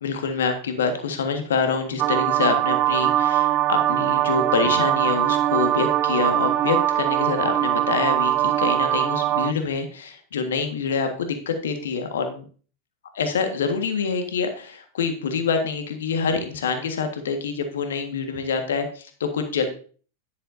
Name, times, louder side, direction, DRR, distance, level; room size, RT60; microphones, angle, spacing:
voice 1, 0.0-12.4 13.2-19.7, left 5 dB, 65° left, 6 dB, 1.6 m, -26 dB
sound 1, 2.0-9.5, right 13 dB, 35° right, 0.4 m, -22 dB
10.5 x 9.3 x 2.7 m, 0.42 s
figure-of-eight pair, 90°, 0 cm